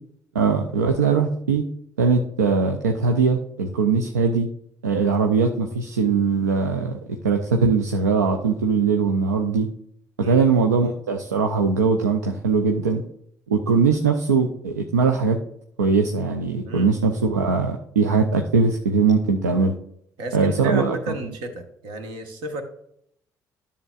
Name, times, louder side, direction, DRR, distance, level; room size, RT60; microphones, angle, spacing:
voice 1, 0.3-1.6 2.0-4.5 4.8-6.9 7.2-9.7 10.2-13.0 13.5-15.4 15.8-19.7 20.3-21.0, right 5 dB, 90° right, 3 dB, 0.5 m, -21 dB
voice 2, 20.2-22.6, right 1 dB, 70° right, 5 dB, 1.2 m, -32 dB
11.0 x 6.9 x 2.4 m, 0.70 s
hypercardioid pair, 50°, 9 cm